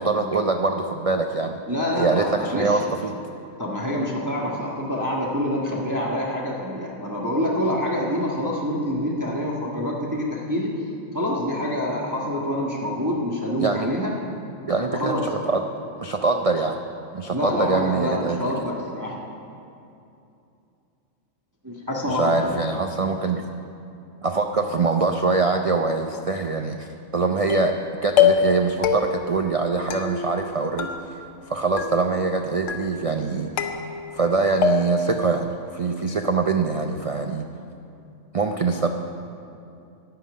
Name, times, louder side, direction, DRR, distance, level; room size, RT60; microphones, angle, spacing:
voice 1, 0.0-1.6 2.0-3.2 13.6-13.9 14.7-15.6 16.0-16.8 17.1-18.5 22.1-23.4 24.2-27.8 28.0-30.9 31.5-33.5 34.1-37.4 38.3-38.9, right 4 dB, 70° right, 4 dB, 0.3 m, -23 dB
voice 2, 1.7-2.8 3.6-10.7 11.1-14.1 14.9-15.2 17.3-19.2 21.6-22.6, left 1 dB, 15° right, -3 dB, 1.4 m, -26 dB
sound 1, 27.5-27.8 28.2-28.6 28.8-29.4 29.9-30.5 30.8-31.5 31.8-32.3 32.7-33.2 33.6-34.3 34.6-35.2, left 7 dB, 70° left, 1.2 m, -24 dB
13.5 x 5.7 x 9.4 m, 2.6 s
omnidirectional pair, 1.4 m